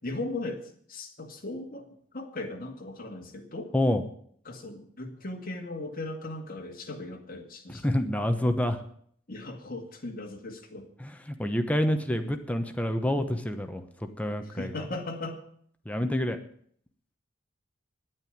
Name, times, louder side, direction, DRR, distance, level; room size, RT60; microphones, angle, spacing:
voice 1, 0.0-3.7 4.4-8.0 9.3-10.9 14.4-15.4, left 2 dB, 45° left, 3 dB, 2.2 m, -38 dB
voice 2, 7.7-8.8 11.0-14.7 15.9-16.4, left 1 dB, 5° left, 7 dB, 1.0 m, -28 dB
10.5 x 8.9 x 9.3 m, 0.62 s
head